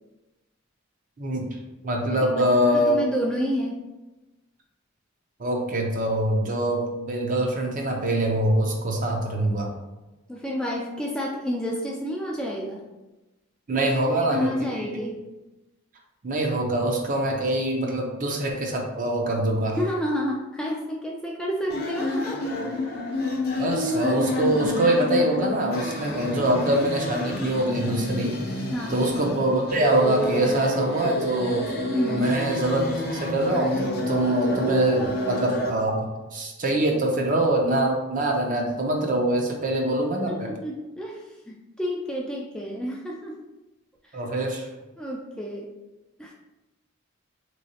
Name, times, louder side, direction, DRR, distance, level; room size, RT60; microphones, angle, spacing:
voice 1, 1.2-1.5 1.8-3.0 5.4-9.7 13.7-15.0 16.2-19.8 23.6-28.6 28.9-31.7 32.1-32.8 33.1-36.0 36.3-40.5 44.1-44.7, right 1 dB, 40° right, 1 dB, 0.6 m, -24 dB
voice 2, 2.1-3.8 10.3-12.9 13.7-13.9 14.2-15.2 19.8-22.7 28.7-29.0 31.9-32.3 40.3-43.4 44.1-44.2 45.0-45.7 46.2-46.3, equal, 5° left, -3 dB, 0.3 m, -30 dB
sound 1, 21.7-35.7, left 1 dB, 50° left, 0.6 m, -29 dB
3.6 x 3.1 x 2.7 m, 1.1 s
head